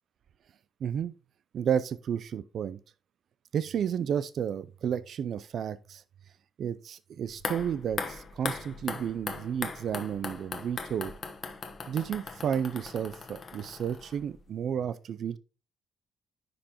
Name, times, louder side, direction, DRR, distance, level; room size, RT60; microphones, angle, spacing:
voice 1, 0.8-1.1 1.5-2.8 3.5-6.0 6.6-11.1 11.9-15.4, right 8 dB, 65° right, 0.3 m, -32 dB
sound 1, 7.3-14.4 14.7-14.8, left 4 dB, 45° left, 1.1 m, -39 dB
9.8 x 5.4 x 2.9 m
supercardioid pair, 70°, 0 cm